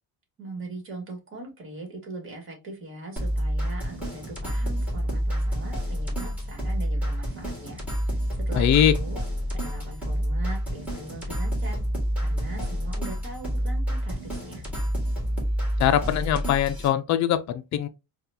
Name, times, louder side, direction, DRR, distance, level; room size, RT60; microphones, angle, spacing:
voice 1, 0.4-9.2 9.5-11.8 12.2-14.6, right 2 dB, 30° right, 1.6 m, -40 dB
sound 1, 3.2-16.9, equal, 5° right, 1.8 m, -28 dB
voice 2, 8.5-8.9 15.8-17.9, left 10 dB, 45° left, 0.5 m, -22 dB
4.2 x 2.4 x 2.6 m
cardioid pair, 150°, 39 cm